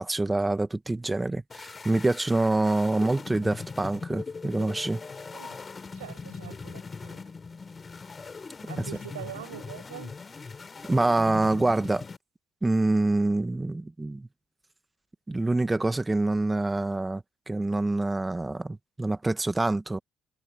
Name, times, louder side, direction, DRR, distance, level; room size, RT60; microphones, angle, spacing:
voice 1, 0.0-5.0 10.9-12.1 12.6-14.3 15.3-20.0, right 2 dB, 20° right, 1.7 m, -26 dB
sound 1, 1.5-12.2, left 4 dB, 35° left, 5.5 m, -40 dB
voice 2, 5.3-5.6 6.0-7.2 8.7-10.2, right 13 dB, 85° right, 6.0 m, -43 dB
hypercardioid pair, 50°, 0 cm